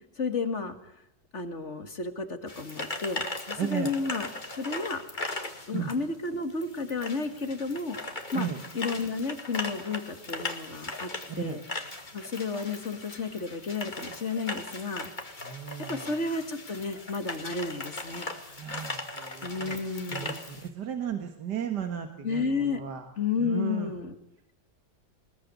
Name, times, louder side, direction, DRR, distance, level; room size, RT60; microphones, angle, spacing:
voice 1, 0.2-0.8 1.3-4.3 4.6-5.0 5.7-8.5 8.7-11.1 11.4-11.6 12.1-15.1 15.9-18.3 19.4-20.4 22.2-22.8 23.2-24.2, left 4 dB, 45° left, 8 dB, 2.3 m, -32 dB
sound 1, 2.5-20.7, left 2 dB, 25° left, 2.3 m, -39 dB
voice 2, 3.6-3.9 5.7-5.9 8.3-8.6 11.4-11.6 15.4-16.1 18.6-19.8 20.1-23.1 23.4-23.9, right 8 dB, 75° right, 6 dB, 2.3 m, -35 dB
22.0 x 21.0 x 9.6 m, 0.75 s
omnidirectional pair, 1.8 m